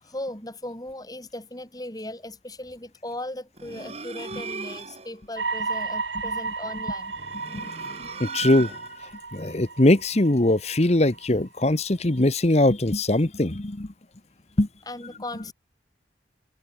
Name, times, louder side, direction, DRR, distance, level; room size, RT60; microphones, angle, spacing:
voice 1, 0.0-7.1 14.9-15.5, left 1 dB, 20° left, 3.9 m, -37 dB
sound 1, 3.6-5.2 7.0-9.1, right 5 dB, 35° right, 2.1 m, -37 dB
sound 2, 5.4-11.3 11.7-11.8, right 4 dB, 90° right, 6.8 m, -33 dB
voice 2, 8.2-8.8 9.3-13.9 14.6-14.7, left 1 dB, 35° left, 1.2 m, -21 dB
head